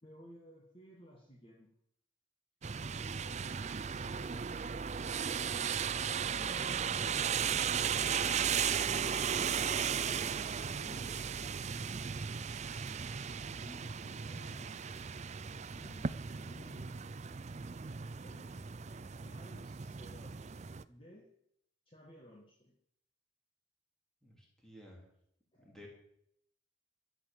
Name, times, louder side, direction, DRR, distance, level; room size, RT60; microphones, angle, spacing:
voice 1, 0.0-1.7 3.3-4.6 6.2-7.7 8.0-9.6 9.9-12.0 13.5-15.0 15.7-17.1 18.2-18.6 19.2-20.4 20.9-21.3 21.9-22.8 25.5-25.7, left 1 dB, 25° left, -1 dB, 1.6 m, -56 dB
sound 1, 2.6-20.8, right 7 dB, 35° right, 0.4 m, -36 dB
voice 2, 24.2-25.0 25.5-25.9, left 1 dB, ahead, -2 dB, 3.7 m, -55 dB
13.0 x 8.0 x 7.5 m, 0.72 s
head